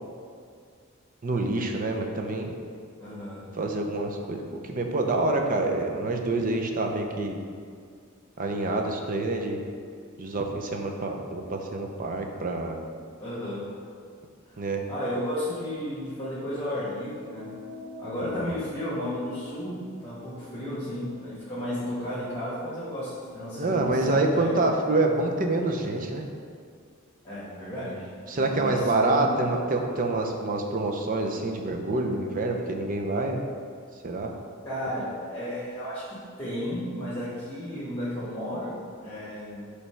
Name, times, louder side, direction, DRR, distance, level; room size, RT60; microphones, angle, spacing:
voice 1, 1.2-2.5 3.6-7.4 8.4-9.6 10.2-12.8 14.6-14.8 18.2-18.6 23.6-26.2 28.3-33.4 34.0-34.3, right 2 dB, 40° right, 3 dB, 0.6 m, -27 dB
voice 2, 3.0-3.5 13.2-13.7 14.9-17.5 18.0-24.6 27.2-28.1 28.3-29.4 34.6-38.7 39.0-39.6, left 1 dB, 20° left, -10 dB, 1.5 m, -33 dB
sound 1, 17.1-21.9, left 2 dB, 10° right, 1.1 m, -47 dB
5.7 x 3.3 x 5.7 m, 2.2 s
head